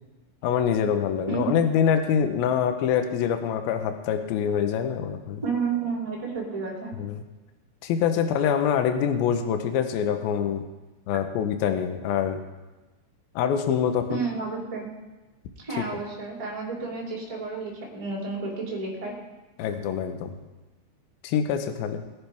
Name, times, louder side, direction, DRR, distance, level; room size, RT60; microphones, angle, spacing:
voice 1, 0.4-5.4 7.0-7.2 7.8-10.6 11.1-12.4 13.4-14.2 19.6-20.3 21.2-22.0, left 8 dB, 75° left, 7 dB, 2.4 m, -25 dB
voice 2, 5.4-6.9 14.1-14.9 15.6-19.1, right 4 dB, 10° right, -3 dB, 2.3 m, -31 dB
20.0 x 10.5 x 3.5 m, 1.1 s
omnidirectional pair, 5.2 m